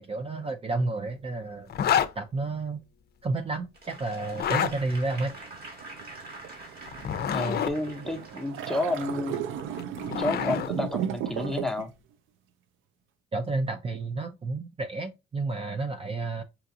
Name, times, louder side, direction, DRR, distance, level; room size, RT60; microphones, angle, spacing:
voice 1, 0.0-1.7 2.2-2.8 3.2-5.4 13.3-16.4, right 3 dB, 30° right, 0.5 m, -31 dB
Zipper (clothing), 1.7-2.1 4.3-4.7 6.9-7.7 9.6-10.7, left 9 dB, 55° left, 0.5 m, -27 dB
Applause / Crowd, 3.7-9.5 10.0-10.1, right 2 dB, 50° right, 1.8 m, -46 dB
sound 1, 4.2-11.9, right 9 dB, 90° right, 0.5 m, -36 dB
voice 2, 7.3-9.4 10.2-11.9, left 2 dB, ahead, 0.8 m, -30 dB
5.7 x 2.4 x 2.7 m
cardioid pair, 90°, 20 cm